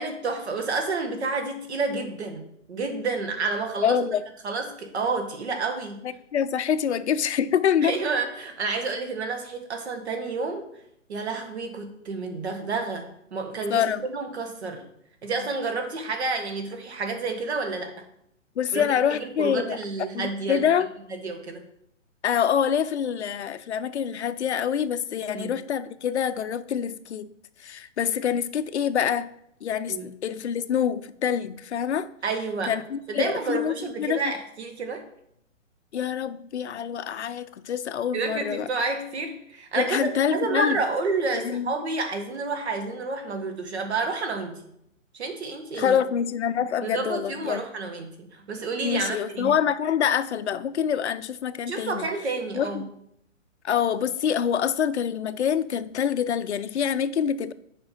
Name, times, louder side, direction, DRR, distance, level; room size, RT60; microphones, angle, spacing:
voice 1, 0.0-4.0 4.4-6.0 7.8-10.7 11.1-13.8 14.1-14.8 15.2-17.9 18.7-20.8 21.1-21.6 25.3-25.5 29.9-30.1 32.2-32.7 33.1-35.1 38.1-44.6 45.1-46.0 46.8-49.6 51.7-52.9, right 3 dB, 55° right, 5 dB, 1.5 m, -30 dB
voice 2, 3.8-4.2 6.3-7.9 13.7-14.0 15.3-15.5 18.6-19.8 20.1-20.9 22.2-27.3 27.6-29.3 29.6-32.1 32.7-34.2 35.9-38.7 39.8-40.8 41.4-41.7 45.8-47.6 48.8-52.1 52.5-52.8 53.6-57.5, left 8 dB, 60° left, 13 dB, 0.6 m, -26 dB
7.4 x 5.1 x 5.4 m, 0.74 s
hypercardioid pair, 165°, 38 cm